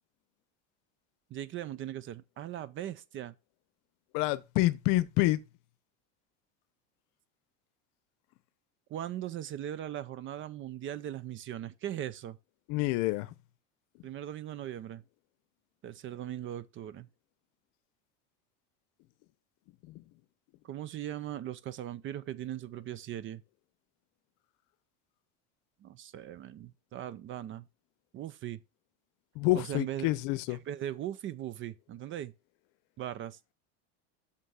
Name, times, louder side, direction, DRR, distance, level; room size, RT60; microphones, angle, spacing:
voice 1, 1.3-3.3 8.9-12.4 14.0-15.0 15.8-17.1 20.6-23.4 25.8-27.7 28.1-28.6 29.5-30.1 30.5-32.3 33.0-33.4, right 11 dB, 35° right, 0.5 m, -39 dB
voice 2, 4.1-5.4 12.7-13.3 29.4-30.6, left 17 dB, 60° left, 0.8 m, -27 dB
6.6 x 5.7 x 5.5 m
supercardioid pair, 130°, 36 cm